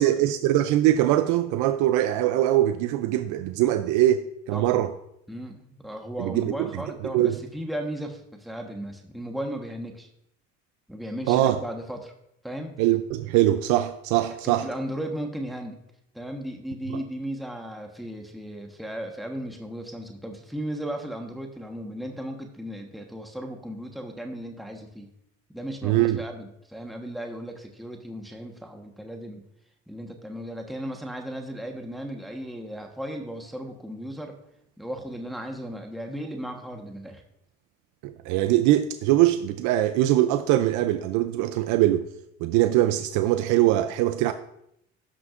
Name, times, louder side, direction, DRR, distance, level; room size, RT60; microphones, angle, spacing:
voice 1, 0.0-4.9 6.2-6.5 7.1-7.4 11.3-11.6 12.8-14.7 25.8-26.2 38.0-42.0 42.4-44.3, right 14 dB, 90° right, 0.5 m, -22 dB
voice 2, 5.3-10.1 10.9-12.1 12.4-12.8 14.4-15.8 16.1-25.1 25.5-29.4 29.9-34.3 34.8-37.2, equal, ahead, 1.2 m, -36 dB
16.5 x 6.0 x 2.5 m
cardioid pair, 100°, 29 cm